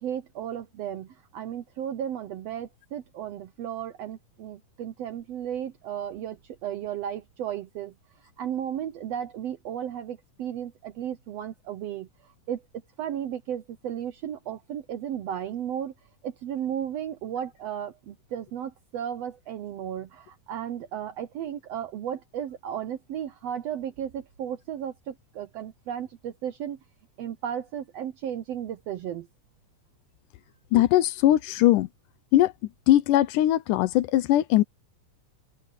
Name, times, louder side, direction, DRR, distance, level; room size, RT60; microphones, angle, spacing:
voice 1, 0.0-7.9 8.4-12.1 12.5-12.6 13.0-15.9 16.2-26.8 27.2-29.3, right 9 dB, 70° right, 1.6 m, -34 dB
voice 2, 30.7-31.9 32.3-34.6, left 14 dB, 80° left, 2.2 m, -21 dB
omnidirectional pair, 3.7 m